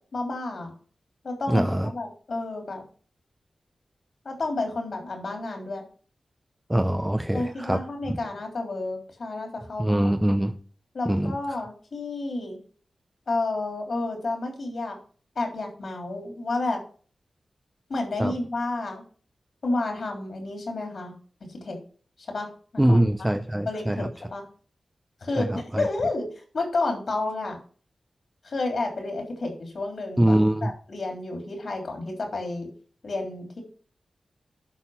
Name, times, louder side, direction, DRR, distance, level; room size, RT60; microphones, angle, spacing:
voice 1, 0.1-0.7 1.2-2.8 4.2-5.8 7.3-10.1 10.9-12.6 13.3-15.0 15.3-16.8 17.9-19.0 19.6-21.1 21.4-21.8 22.3-23.0 23.6-24.4 25.2-27.6 28.4-32.7 33.0-33.6, left 2 dB, 65° left, 2 dB, 3.3 m, -31 dB
voice 2, 1.5-1.9 6.7-7.8 8.1-8.2 9.8-10.5 11.1-11.3 18.2-18.3 22.8-24.1 25.4-25.9 30.2-30.7, right 1 dB, 10° right, 6 dB, 0.6 m, -23 dB
11.5 x 4.3 x 5.7 m, 0.42 s
wide cardioid pair, 75°, 0 cm